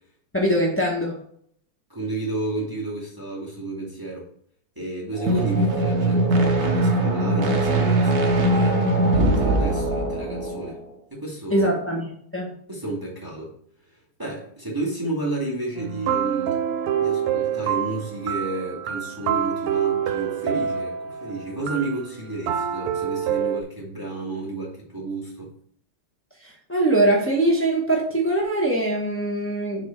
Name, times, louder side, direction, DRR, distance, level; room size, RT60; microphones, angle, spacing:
voice 1, 0.3-1.2 11.5-12.1 12.3-12.5 26.4-29.9, right 1 dB, 20° left, -3 dB, 0.3 m, -22 dB
voice 2, 1.9-4.3 4.8-8.8 9.1-10.8 11.1-11.7 12.7-13.5 13.9-16.7 17.0-25.5, right 2 dB, 10° right, -4 dB, 1.9 m, -31 dB
sound 1, 5.2-10.8, right 2 dB, 55° right, 1.3 m, -21 dB
sound 2, 15.8-23.6, right 9 dB, 85° right, 1.6 m, -26 dB
7.0 x 4.3 x 4.4 m, 0.64 s
omnidirectional pair, 2.4 m